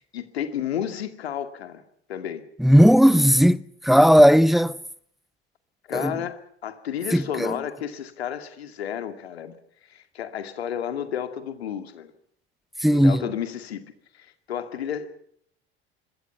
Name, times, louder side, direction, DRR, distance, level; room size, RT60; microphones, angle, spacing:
voice 1, 0.1-1.8 2.1-2.5 5.9-9.6 9.9-12.1 12.8-13.9 14.1-15.1, left 9 dB, 75° left, 2.3 m, -32 dB
voice 2, 2.6-4.8 5.9-6.1 7.1-7.5 12.8-13.2, equal, ahead, 0.8 m, -16 dB
25.5 x 22.0 x 5.8 m
figure-of-eight pair, 65°, 31 cm